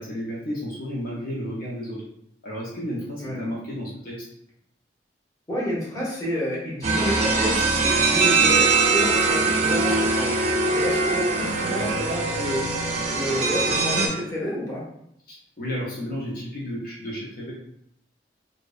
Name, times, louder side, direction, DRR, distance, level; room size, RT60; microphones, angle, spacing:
voice 1, 0.0-2.0 2.4-4.2 15.3-17.5, equal, 55° left, -5 dB, 0.5 m, -32 dB
voice 2, 5.5-10.3 10.7-12.6 13.1-14.8, equal, 20° left, -6 dB, 0.8 m, -29 dB
sound 1, 6.8-14.1, right 3 dB, 40° right, 0.4 m, -22 dB
2.5 x 2.1 x 2.3 m, 0.73 s
head